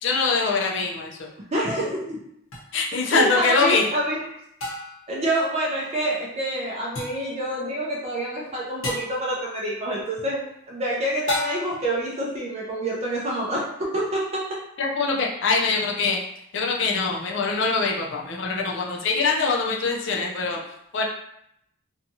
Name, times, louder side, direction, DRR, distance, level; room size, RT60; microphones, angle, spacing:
voice 1, 0.0-1.3 2.7-3.8 14.8-16.2 16.5-20.6 20.9-21.0, left 4 dB, 55° left, 0 dB, 0.4 m, -23 dB
voice 2, 1.5-2.2 3.0-4.2 5.1-14.4, right 1 dB, 30° right, -4 dB, 0.4 m, -27 dB
sound 1, 2.5-2.6 4.6-5.1 6.9-7.3 8.8-9.2 11.3-11.9, left 1 dB, 75° left, 0.9 m, -31 dB
2.7 x 2.3 x 2.7 m, 0.76 s
head